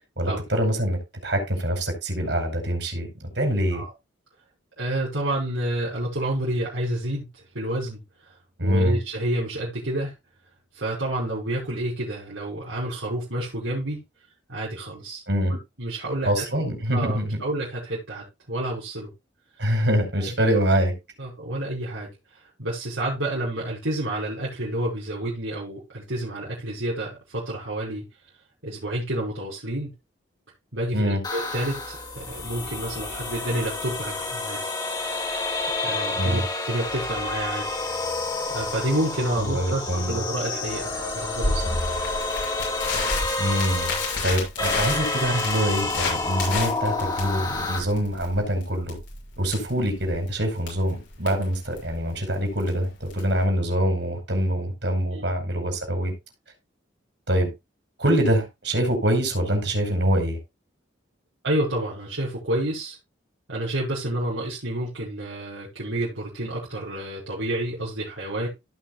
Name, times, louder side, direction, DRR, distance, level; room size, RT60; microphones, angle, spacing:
voice 1, 0.2-3.8 8.6-9.0 15.3-15.5 16.2-17.4 19.6-20.9 30.9-31.2 36.2-36.4 39.4-40.2 43.4-44.0 44.2-49.0 49.4-56.1 57.3-57.5 58.0-60.4, equal, 65° right, 4 dB, 5.4 m, -24 dB
voice 2, 4.8-10.1 10.7-14.0 14.5-15.2 15.8-16.4 16.9-19.1 20.2-20.3 21.2-28.0 28.6-29.9 30.7-34.6 35.8-37.7 38.5-41.6 55.1-55.3 61.4-63.0 63.5-68.5, right 1 dB, 90° right, -7 dB, 5.3 m, -29 dB
sound 1, 31.2-47.8, left 3 dB, 20° left, 2.8 m, -29 dB
Crackle, 41.4-53.4, left 3 dB, 75° left, 6.6 m, -32 dB
17.5 x 6.2 x 2.3 m, 0.23 s
head